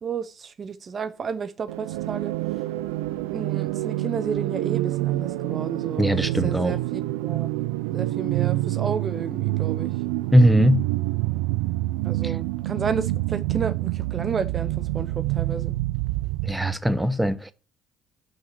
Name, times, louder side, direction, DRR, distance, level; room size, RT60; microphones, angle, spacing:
voice 1, 0.0-2.3 3.3-7.5 7.9-10.0 12.0-15.8, right 6 dB, 40° right, 0.7 m, -32 dB
sound 1, 1.7-16.6, right 17 dB, 70° right, 0.5 m, -27 dB
voice 2, 6.0-6.7 10.3-10.8 12.2-12.3 16.4-17.5, equal, 5° right, 1.0 m, -20 dB
7.1 x 6.5 x 6.4 m
figure-of-eight pair, 50°, 0 cm